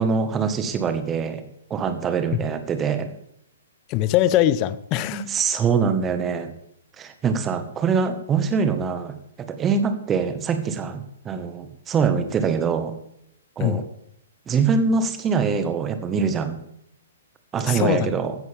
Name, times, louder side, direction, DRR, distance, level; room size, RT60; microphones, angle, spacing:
voice 1, 0.0-1.4 1.7-3.1 5.1-6.5 7.0-12.9 13.6-13.8 14.5-16.6 17.5-18.4, right 5 dB, 20° right, 1.6 m, -24 dB
voice 2, 3.9-5.2 13.6-13.9 17.6-18.1, left 13 dB, 30° left, 0.7 m, -22 dB
16.0 x 13.0 x 3.6 m
figure-of-eight pair, 120°, 0 cm